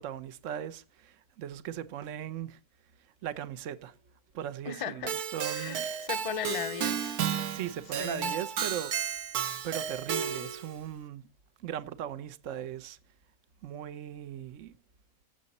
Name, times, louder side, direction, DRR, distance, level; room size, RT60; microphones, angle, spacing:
voice 1, 0.0-2.6 3.2-3.9 4.3-5.9 7.5-9.2 9.6-11.3 11.6-13.0 13.6-14.7, right 10 dB, 60° right, 1.1 m, -38 dB
voice 2, 4.6-5.2 5.4-7.2 8.0-8.3, left 7 dB, 40° left, 0.5 m, -37 dB
Keyboard (musical), 5.1-10.7, right 8 dB, 75° right, 1.4 m, -33 dB
16.0 x 6.8 x 4.1 m
omnidirectional pair, 1.6 m